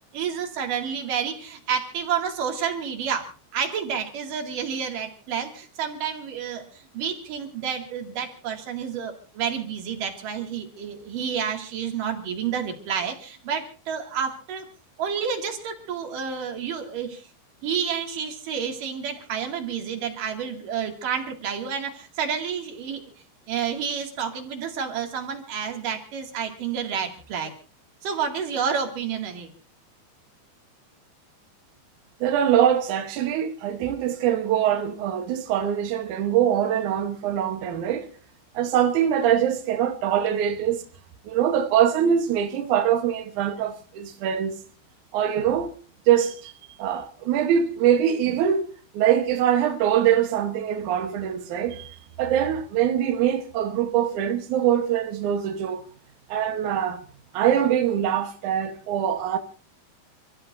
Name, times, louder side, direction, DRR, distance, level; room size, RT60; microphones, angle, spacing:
voice 1, 0.1-14.7 15.0-17.3 17.6-23.1 23.5-27.5 28.0-29.5, right 7 dB, 55° right, 3.5 m, -30 dB
voice 2, 32.2-38.1 38.5-40.9 41.3-44.6 45.1-45.7 46.1-46.5 46.8-48.6 48.9-55.8 56.3-57.0 57.3-59.4, right 9 dB, 75° right, 1.8 m, -23 dB
29.0 x 14.5 x 2.6 m
omnidirectional pair, 5.2 m